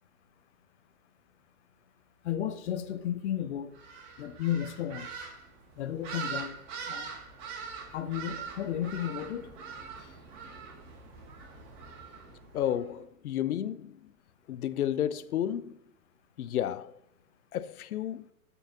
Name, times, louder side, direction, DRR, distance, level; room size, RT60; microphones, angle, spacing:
voice 1, 2.2-3.7 4.2-5.1 5.8-6.5 6.9-7.1 7.9-9.5, left 10 dB, 50° left, 0.9 m, -33 dB
sound 1, 3.7-12.8, right 6 dB, 35° right, 2.1 m, -43 dB
voice 2, 12.5-14.0 14.5-15.8 16.4-16.9 17.5-18.2, left 10 dB, 80° left, 0.7 m, -31 dB
13.0 x 5.6 x 2.7 m
hypercardioid pair, 145°, 44 cm